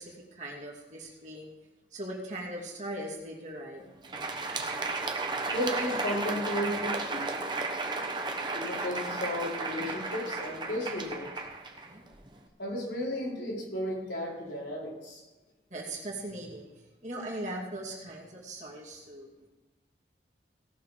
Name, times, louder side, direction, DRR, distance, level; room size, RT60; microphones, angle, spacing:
voice 1, 0.0-1.5 1.9-4.0 11.7-12.0 15.7-19.5, right 1 dB, 40° right, -3 dB, 2.7 m, -40 dB
Crowd, 3.9-12.4, right 3 dB, 25° right, 1.1 m, -34 dB
voice 2, 5.5-7.2 8.5-11.3 12.6-15.2, left 1 dB, 80° left, -5 dB, 4.8 m, -34 dB
18.0 x 6.6 x 5.2 m, 1.2 s
head